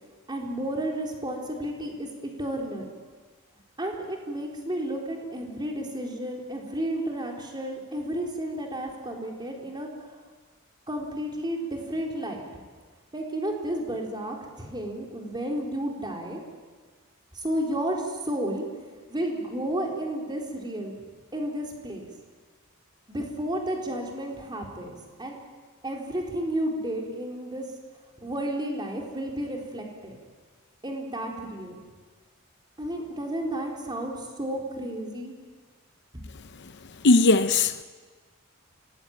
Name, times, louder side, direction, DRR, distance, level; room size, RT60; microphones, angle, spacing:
voice 1, 0.3-2.1 2.4-2.9 3.8-9.9 10.9-12.5 13.1-16.4 17.3-18.6 19.1-21.0 21.3-22.1 23.1-25.4 25.8-27.6 28.2-30.2 30.8-31.8 32.8-35.3 36.1-36.2, right 1 dB, 20° right, 4.0 m, -32 dB
voice 2, 37.0-37.8, left 3 dB, 55° left, 0.7 m, -19 dB
25.5 x 18.5 x 8.9 m
head